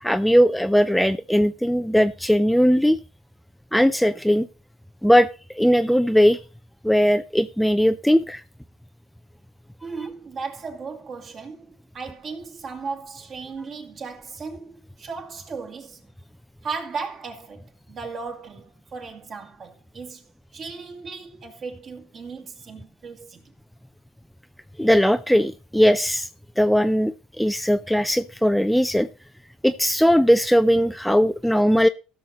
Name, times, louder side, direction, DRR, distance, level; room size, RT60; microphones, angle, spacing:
voice 1, 0.0-3.0 3.7-4.5 5.0-5.3 5.5-6.4 6.8-8.4 24.8-26.3 26.6-29.1 29.6-31.9, equal, ahead, 0.4 m, -19 dB
voice 2, 9.8-16.0 16.6-23.4, right 4 dB, 40° right, 2.5 m, -36 dB
15.5 x 6.5 x 4.1 m
supercardioid pair, 100°, 0 cm